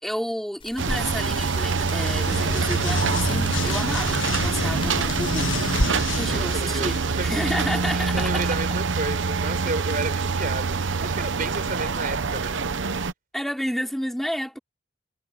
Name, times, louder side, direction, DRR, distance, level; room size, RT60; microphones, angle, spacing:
voice 1, 0.0-5.5 6.1-8.5 13.3-14.6, equal, ahead, 4.8 m, -31 dB
sound 1, 0.6-5.9, left 1 dB, 30° left, 5.0 m, -34 dB
sound 2, 0.8-13.1, right 4 dB, 70° right, 0.8 m, -25 dB
sound 3, 1.8-7.4, left 3 dB, 75° left, 1.5 m, -31 dB
voice 2, 6.3-7.4 7.9-12.6, right 3 dB, 45° right, 5.1 m, -32 dB
head